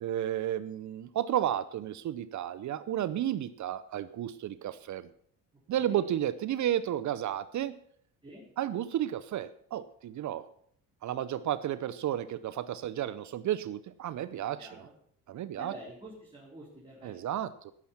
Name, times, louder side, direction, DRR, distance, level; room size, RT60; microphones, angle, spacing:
voice 1, 0.0-5.1 5.7-7.7 8.6-10.5 11.0-14.9 15.3-15.7 17.0-17.7, right 11 dB, 55° right, 15 dB, 0.7 m, -32 dB
voice 2, 14.6-14.9 15.6-17.4, right 1 dB, 15° right, -5 dB, 4.0 m, -48 dB
17.0 x 7.1 x 5.9 m, 0.63 s
cardioid pair, 100°, 36 cm